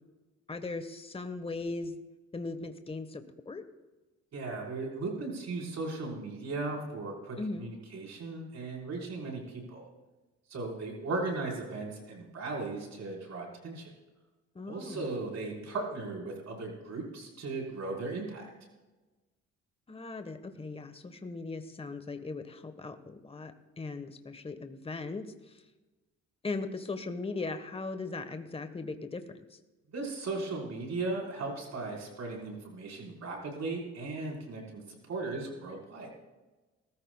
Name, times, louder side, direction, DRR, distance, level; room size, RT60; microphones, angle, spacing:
voice 1, 0.5-2.0 2.3-3.6 7.4-7.7 14.5-15.1 19.9-25.6 26.4-29.6, left 3 dB, 20° left, 8 dB, 1.2 m, -39 dB
voice 2, 4.3-9.9 10.5-13.9 14.7-18.5 29.9-36.1, right 3 dB, 60° right, -1 dB, 4.3 m, -37 dB
19.5 x 14.5 x 2.3 m, 1.2 s
cardioid pair, 90°, 30 cm